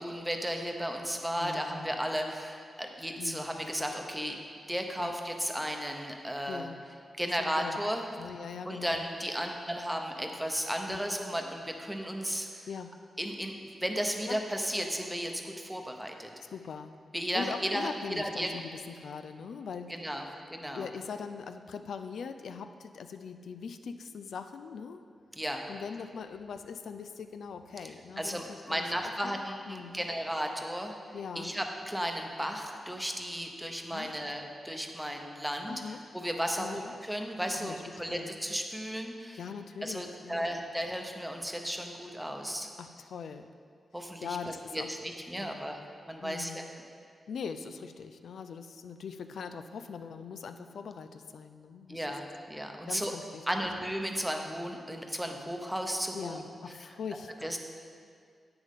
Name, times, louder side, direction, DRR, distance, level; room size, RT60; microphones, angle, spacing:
voice 1, 0.0-4.4 4.7-6.7 7.2-8.0 8.6-12.7 13.2-13.5 13.8-16.3 17.1-17.9 18.2-18.5 19.9-20.2 20.5-20.9 25.4-25.6 27.8-30.9 31.4-35.8 36.1-39.4 39.8-42.7 43.9-45.8 46.1-46.6 51.9-53.1 53.5-56.4 57.4-57.6, equal, 5° right, 3 dB, 0.8 m, -34 dB
voice 2, 1.4-1.9 3.2-3.6 5.0-5.2 6.5-6.9 7.4-7.8 8.2-9.1 10.9-11.0 12.7-13.0 14.3-14.4 16.5-17.0 17.3-19.9 20.7-25.0 25.7-30.1 31.1-31.6 33.9-34.3 35.7-36.0 36.6-36.9 37.5-37.8 38.1-38.4 39.3-40.5 42.8-43.5 44.2-44.9 45.4-45.7 46.2-46.7 47.3-52.1 52.9-53.7 56.1-57.6, left 6 dB, 80° left, 9 dB, 0.4 m, -41 dB
10.5 x 8.8 x 3.6 m, 2.2 s
wide cardioid pair, 140°, 0 cm